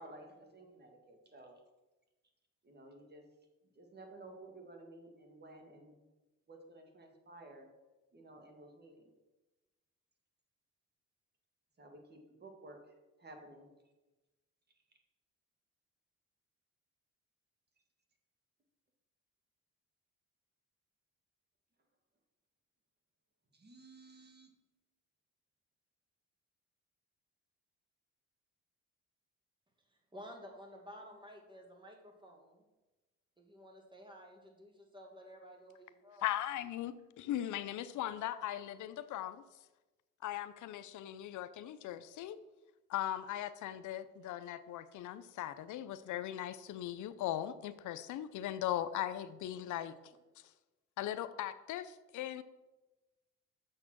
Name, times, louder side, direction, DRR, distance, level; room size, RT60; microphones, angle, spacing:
voice 1, 0.0-1.5 2.6-3.2 3.8-5.9 6.5-7.7 8.1-9.1 11.8-12.8 13.2-13.7 23.5-24.5, right 2 dB, 35° right, 3 dB, 1.9 m, -54 dB
voice 2, 30.1-32.6 33.4-36.2 49.5-49.9, equal, 15° right, 2 dB, 2.2 m, -53 dB
voice 3, 36.2-39.4 40.2-42.4 42.9-49.9 51.0-52.4, left 12 dB, 75° left, 13 dB, 0.6 m, -39 dB
6.9 x 6.5 x 6.1 m, 1.1 s
cardioid pair, 90°, 30 cm